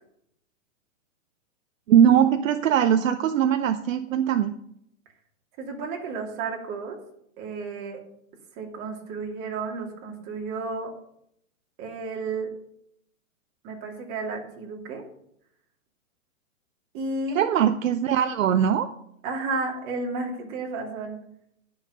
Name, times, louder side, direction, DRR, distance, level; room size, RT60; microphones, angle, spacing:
voice 1, 1.9-4.5 17.3-18.9, right 9 dB, 70° right, 9 dB, 0.8 m, -21 dB
voice 2, 5.6-7.0 7.4-8.0 8.5-10.9 11.8-12.5 13.6-15.0 16.9-17.4 19.2-21.2, right 3 dB, 35° right, 0 dB, 2.7 m, -32 dB
11.0 x 5.6 x 6.6 m, 0.74 s
hypercardioid pair, 145°, 40 cm